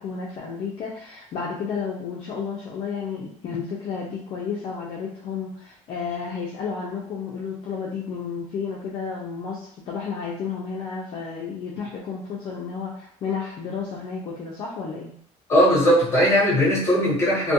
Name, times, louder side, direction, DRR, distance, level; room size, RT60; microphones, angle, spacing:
voice 1, 0.0-15.1, left 5 dB, 45° left, -4 dB, 0.4 m, -32 dB
voice 2, 15.5-17.5, equal, 20° left, -5 dB, 0.9 m, -19 dB
2.3 x 2.2 x 2.7 m, 0.63 s
cardioid pair, 180°, 13 cm